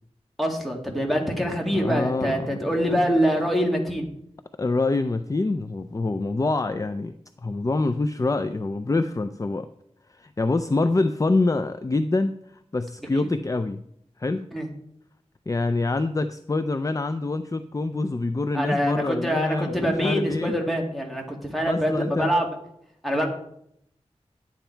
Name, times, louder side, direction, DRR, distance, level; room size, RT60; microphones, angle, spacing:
voice 1, 0.4-4.1 13.2-13.3 14.5-14.7 18.5-22.5 23.0-23.3, equal, ahead, 1 dB, 2.1 m, -25 dB
voice 2, 1.7-2.8 4.6-7.1 7.4-9.7 10.1-12.3 12.7-13.8 14.2-14.5 15.5-20.6 21.6-22.3, left 3 dB, 30° left, 10 dB, 0.4 m, -25 dB
10.5 x 9.0 x 4.5 m, 0.72 s
wide cardioid pair, 85°, 12 cm